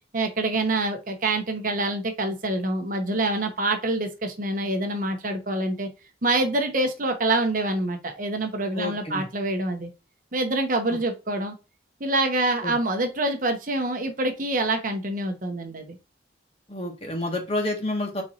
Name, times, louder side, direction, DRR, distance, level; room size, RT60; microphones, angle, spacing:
voice 1, 0.1-5.9 6.2-9.9 10.3-11.5 12.0-16.0, right 2 dB, 45° right, 4 dB, 1.0 m, -26 dB
voice 2, 8.7-9.2 10.9-11.0 12.6-12.7 16.7-18.2, left 1 dB, 30° left, 2 dB, 1.4 m, -29 dB
4.6 x 4.1 x 2.5 m, 0.28 s
head